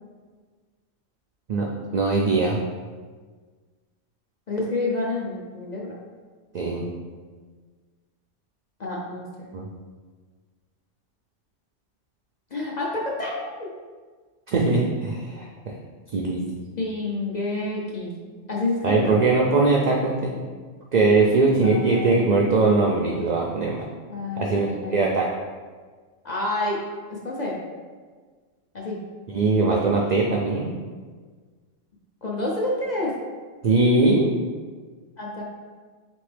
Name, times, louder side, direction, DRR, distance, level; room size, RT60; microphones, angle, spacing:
voice 1, 1.9-2.6 6.5-6.9 9.5-9.7 14.5-15.7 16.1-16.4 18.8-20.3 20.9-23.8 24.4-25.3 29.3-30.7 33.6-34.3, right 3 dB, 75° right, -2 dB, 0.4 m, -21 dB
voice 2, 4.5-6.0 8.8-9.5 12.5-13.7 14.7-15.0 16.8-18.1 18.5-19.2 21.6-22.2 24.1-25.1 26.2-26.8 27.1-27.6 28.7-29.0 32.2-33.1 35.2-35.4, left 2 dB, 50° left, -3 dB, 0.6 m, -29 dB
3.9 x 3.5 x 3.3 m, 1.5 s
omnidirectional pair, 1.3 m